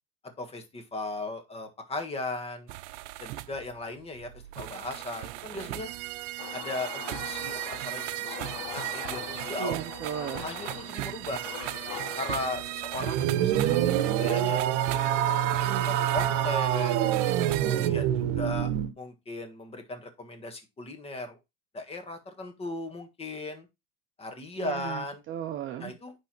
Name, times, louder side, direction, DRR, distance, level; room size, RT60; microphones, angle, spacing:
voice 1, 0.4-2.7 3.2-4.3 4.6-5.9 6.5-9.8 10.4-11.5 12.1-14.6 15.2-15.5 15.8-17.1 17.5-18.7 19.0-21.4 21.7-23.7 24.2-25.2 25.8-26.1, left 2 dB, 15° left, 1.6 m, -37 dB
sound 1, 2.7-17.9, right 17 dB, 90° right, 0.6 m, -37 dB
sound 2, 6.4-14.5, left 12 dB, 65° left, 1.1 m, -43 dB
voice 2, 9.6-10.5 15.6-16.0 24.6-26.0, right 10 dB, 35° right, 0.7 m, -36 dB
sound 3, 13.0-18.9, right 11 dB, 65° right, 1.1 m, -26 dB
10.0 x 3.5 x 4.5 m
supercardioid pair, 140°, 35 cm